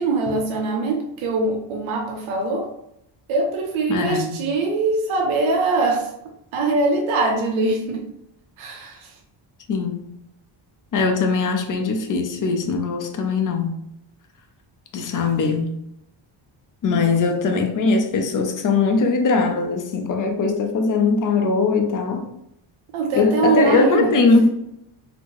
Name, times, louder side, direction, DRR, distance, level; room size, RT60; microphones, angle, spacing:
voice 1, 0.0-2.7 3.3-6.1 6.5-8.1 8.6-9.1 16.9-17.1 22.9-24.1, right 3 dB, 75° right, 0.6 m, -22 dB
voice 2, 3.9-4.4 9.7-10.1 10.9-13.8 14.9-15.7 16.8-22.4 23.1-24.5, left 4 dB, 40° left, 0.6 m, -20 dB
4.0 x 2.0 x 3.0 m
cardioid pair, 135°, 48 cm